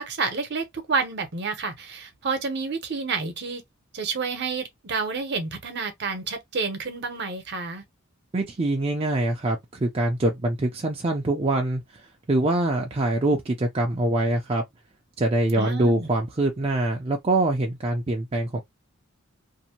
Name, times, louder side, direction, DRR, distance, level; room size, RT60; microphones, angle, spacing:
voice 1, 0.0-3.6 3.9-7.8 15.6-16.1, right 4 dB, 55° right, 0.8 m, -29 dB
voice 2, 8.3-11.8 12.3-14.6 15.2-18.6, right 2 dB, 30° right, 0.4 m, -24 dB
2.6 x 2.1 x 2.8 m
head